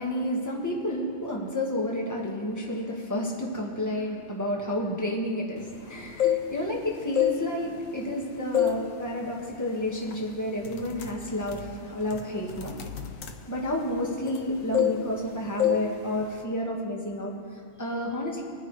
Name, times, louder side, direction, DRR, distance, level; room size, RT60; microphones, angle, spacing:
voice 1, 0.0-12.8 13.5-18.4, left 1 dB, 15° left, -2 dB, 1.7 m, -31 dB
sound 1, 6.0-6.7 7.1-8.2 8.5-8.9 9.3-9.5 10.1-10.3 10.6-14.4 14.7-15.3 15.6-15.9 16.2-16.4, left 11 dB, 75° left, 1.2 m, -27 dB
25.5 x 9.6 x 3.3 m, 2.2 s
omnidirectional pair, 1.4 m